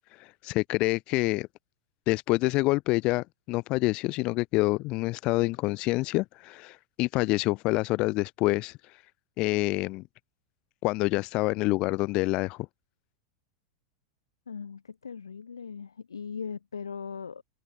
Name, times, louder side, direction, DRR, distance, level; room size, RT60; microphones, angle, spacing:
voice 1, 0.1-1.5 2.1-9.0 9.4-10.0 10.8-12.7, left 22 dB, 40° left, 0.7 m, -27 dB
voice 2, 14.5-17.4, left 6 dB, 75° left, 3.8 m, -39 dB
figure-of-eight pair, 90°, 2 cm